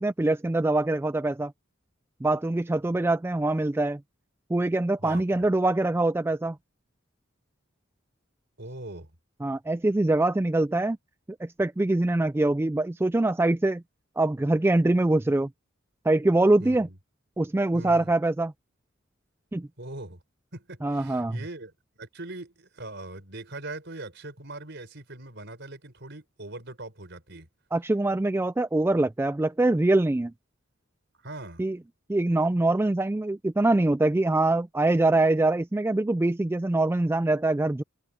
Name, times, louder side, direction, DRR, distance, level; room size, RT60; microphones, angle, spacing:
voice 1, 0.0-1.5 2.2-4.0 4.5-6.6 9.4-11.0 11.4-13.8 14.2-15.5 16.1-16.9 17.4-18.5 19.5-19.7 20.8-21.4 27.7-30.3 31.6-31.8 32.1-37.8, right 2 dB, 10° right, 0.3 m, -24 dB
voice 2, 8.6-9.1 16.6-17.0 17.7-18.1 19.8-20.2 20.5-27.5 31.2-31.6, right 2 dB, 55° right, 5.0 m, -41 dB
open air
head